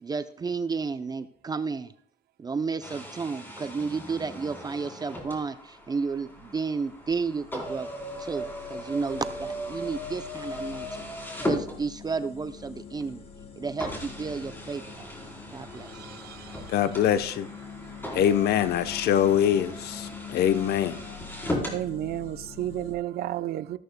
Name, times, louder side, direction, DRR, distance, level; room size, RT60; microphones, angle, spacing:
voice 1, 0.0-1.9 2.4-7.9 8.2-11.1 11.5-13.2 13.6-15.1 15.5-15.9, right 4 dB, 25° right, 0.5 m, -32 dB
sound 1, 2.8-12.3 13.0-13.1 13.8-21.8, equal, 15° left, 3.7 m, -37 dB
sound 2, 5.7-23.0, left 6 dB, 35° left, 1.2 m, -46 dB
voice 2, 16.0-16.5 21.6-23.8, right 13 dB, 65° right, 0.6 m, -32 dB
voice 3, 16.7-17.5 18.1-21.0, left 10 dB, 70° left, 0.8 m, -24 dB
14.0 x 13.5 x 2.2 m
cardioid pair, 110°, 17 cm